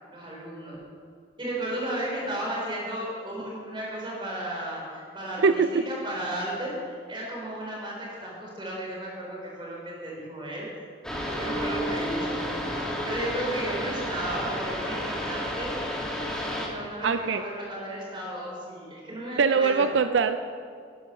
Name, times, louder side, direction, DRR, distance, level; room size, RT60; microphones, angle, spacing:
voice 1, 0.1-0.8 1.4-10.9 11.3-12.5 12.8-16.0 16.5-19.9, right 1 dB, 25° right, -3 dB, 4.1 m, -34 dB
voice 2, 5.4-5.8 17.0-17.4 19.4-20.4, right 5 dB, 80° right, 10 dB, 0.5 m, -22 dB
sound 1, 11.0-16.7, equal, 5° left, 1.7 m, -31 dB
13.0 x 10.5 x 6.1 m, 2.3 s
head